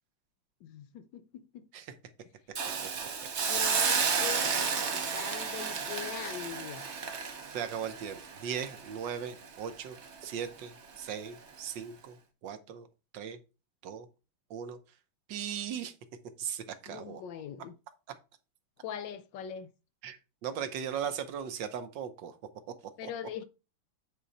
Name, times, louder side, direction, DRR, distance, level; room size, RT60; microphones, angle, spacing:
voice 1, 0.6-1.7 3.5-6.9 16.9-17.8 18.8-19.7 23.0-23.4, left 9 dB, 75° left, 1.3 m, -41 dB
Hiss, 2.6-9.6 10.0-10.1, right 6 dB, 45° right, 0.9 m, -32 dB
voice 2, 7.5-10.0 10.2-10.7 11.0-12.1 12.4-12.9 13.1-13.4 13.8-14.1 14.5-14.8 15.3-15.9 16.4-17.2 20.0-20.2 20.4-22.3, right 8 dB, 70° right, 1.5 m, -37 dB
8.4 x 3.8 x 4.1 m
omnidirectional pair, 2.2 m